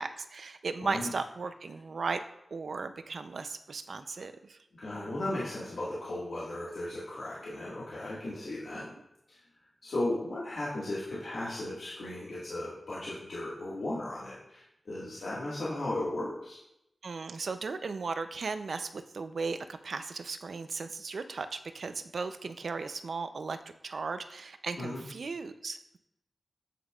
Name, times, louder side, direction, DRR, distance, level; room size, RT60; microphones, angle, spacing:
voice 1, 0.0-2.2 2.5-4.6 17.0-23.6 23.8-26.0, right 4 dB, 75° right, 10 dB, 0.5 m, -36 dB
voice 2, 4.8-8.9 9.3-9.4 9.8-16.6 24.8-25.0, left 1 dB, 80° left, -8 dB, 1.7 m, -36 dB
8.6 x 8.4 x 2.4 m, 0.83 s
wide cardioid pair, 65°, 0 cm